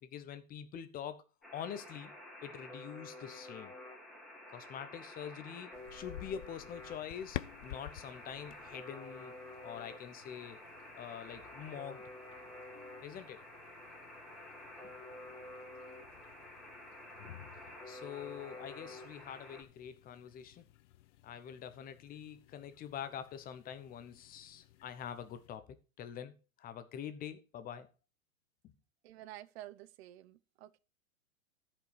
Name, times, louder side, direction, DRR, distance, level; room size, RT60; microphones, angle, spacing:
voice 1, 0.0-1.2 1.5-2.1 2.4-3.7 4.5-9.3 9.6-10.6 11.0-12.1 12.7-13.4 17.9-20.6 21.2-27.9 28.6-28.7, left 9 dB, 20° left, 0.9 m, -45 dB
Alarm, 1.4-19.6, left 1 dB, ahead, 2.3 m, -50 dB
sound 1, 5.7-25.5, left 14 dB, 60° left, 0.6 m, -53 dB
voice 2, 29.0-30.8, right 14 dB, 50° right, 0.8 m, -50 dB
13.0 x 5.4 x 4.8 m
hypercardioid pair, 120°, 41 cm